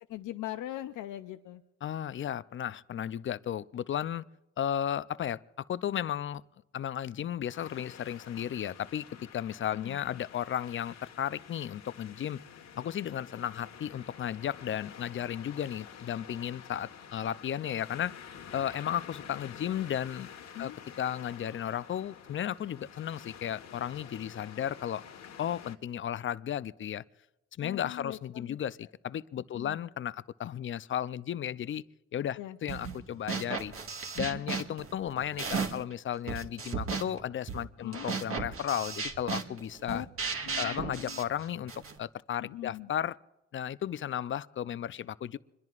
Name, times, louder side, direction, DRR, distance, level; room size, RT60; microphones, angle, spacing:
voice 1, 0.1-1.6 9.7-10.0 20.5-20.8 27.6-28.6 29.5-29.8 32.4-32.6 37.8-38.1 39.9-40.1 40.4-41.2 42.4-42.9, left 13 dB, 80° left, 0.7 m, -40 dB
voice 2, 1.8-4.2 4.6-5.4 5.7-6.4 6.7-12.4 12.7-18.1 18.5-20.3 20.6-20.7 21.0-25.0 25.4-27.0 27.6-31.8 32.1-33.7 34.1-40.1 40.6-41.7 42.0-43.2 43.5-45.4, left 10 dB, 40° left, 0.5 m, -34 dB
sound 1, 7.5-25.7, left 7 dB, 60° left, 1.5 m, -49 dB
sound 2, 32.7-33.0 33.3-35.9 36.3-42.0, right 5 dB, 45° right, 1.7 m, -35 dB
26.0 x 21.5 x 2.5 m
cardioid pair, 90°, 30 cm